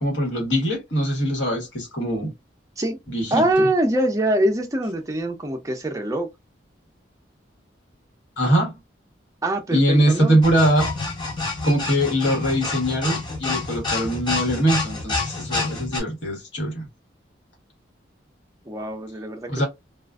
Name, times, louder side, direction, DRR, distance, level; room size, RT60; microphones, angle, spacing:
voice 1, 0.0-2.3 3.1-3.4 8.4-8.7 9.7-10.9 11.6-16.9 19.5-19.6, equal, 80° left, 1.2 m, -22 dB
voice 2, 3.3-6.3 9.4-10.4 18.7-19.6, right 1 dB, 15° right, 0.5 m, -23 dB
sound 1, 10.4-16.0, left 3 dB, 25° left, 0.7 m, -28 dB
2.4 x 2.3 x 2.3 m
head